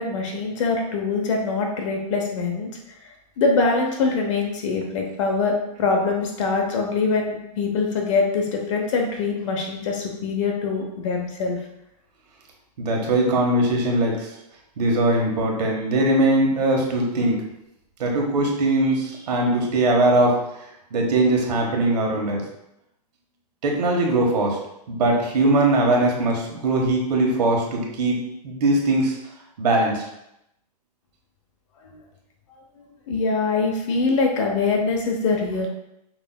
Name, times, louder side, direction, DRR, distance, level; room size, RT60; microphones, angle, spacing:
voice 1, 0.0-2.7 3.4-11.6 31.8-32.0 33.1-35.7, left 4 dB, 45° left, 1 dB, 0.8 m, -23 dB
voice 2, 12.8-14.3 14.8-17.4 18.0-20.3 20.9-22.4 23.6-24.6 24.9-29.2 29.6-30.0, right 2 dB, 70° right, 0 dB, 1.5 m, -21 dB
5.6 x 4.1 x 2.2 m, 0.83 s
hypercardioid pair, 165°, 21 cm